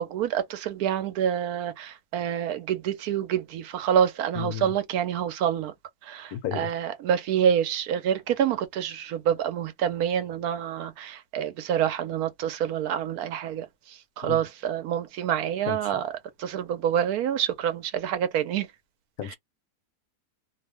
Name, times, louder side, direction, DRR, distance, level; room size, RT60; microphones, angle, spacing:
voice 1, 0.0-5.7 6.0-16.0 16.4-18.7, right 9 dB, 85° right, 1.1 m, -27 dB
voice 2, 4.3-4.8 6.3-6.7 14.2-14.4 15.7-15.9 19.2-19.4, left 9 dB, 75° left, 1.1 m, -33 dB
2.8 x 2.1 x 3.3 m
omnidirectional pair, 1.6 m